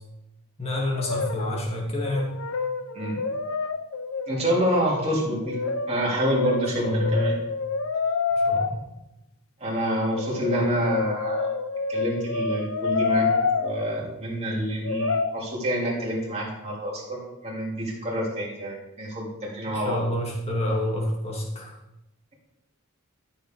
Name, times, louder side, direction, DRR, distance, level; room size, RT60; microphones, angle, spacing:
voice 1, 0.6-2.3 6.7-7.2 8.4-8.8 19.7-21.7, left 1 dB, 30° left, -2 dB, 2.4 m, -28 dB
Brass instrument, 1.0-1.7 1.9-4.5 5.5-8.7 10.0-13.9 14.8-15.3, left 4 dB, 65° left, 0.7 m, -27 dB
voice 2, 4.3-5.6 5.9-7.4 9.6-11.5 11.9-13.3 13.6-20.0, right 1 dB, 30° right, -4 dB, 2.9 m, -27 dB
13.0 x 7.0 x 3.8 m, 0.94 s
head